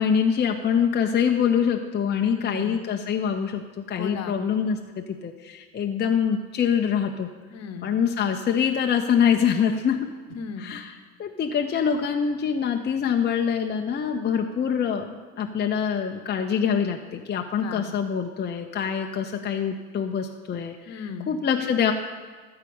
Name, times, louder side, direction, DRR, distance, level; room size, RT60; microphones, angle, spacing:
voice 1, 0.0-3.6 3.9-4.8 5.2-7.3 7.8-10.1 10.6-10.8 11.2-20.7 21.3-21.9, left 7 dB, 30° left, 3 dB, 0.7 m, -24 dB
voice 2, 2.4-2.7 4.0-4.4 7.5-7.9 10.3-10.7 17.6-17.9 20.9-21.3, left 5 dB, 50° left, 8 dB, 1.1 m, -35 dB
13.0 x 4.8 x 8.6 m, 1.5 s
supercardioid pair, 90°, 33 cm